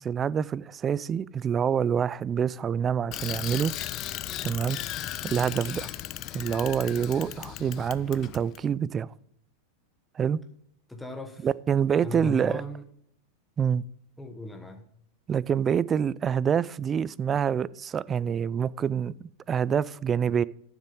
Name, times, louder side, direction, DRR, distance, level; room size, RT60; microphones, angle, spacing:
voice 1, 0.0-3.7 4.4-4.8 5.2-5.9 6.3-9.1 10.1-10.4 11.4-12.6 13.6-13.9 15.3-20.4, right 8 dB, 25° right, 0.4 m, -26 dB
Bicycle, 3.1-8.6, left 13 dB, 45° left, 0.6 m, -36 dB
voice 2, 10.9-11.5 12.0-12.8 14.2-14.9, left 2 dB, 5° left, 1.2 m, -38 dB
9.6 x 7.3 x 5.3 m
hypercardioid pair, 105°, 0 cm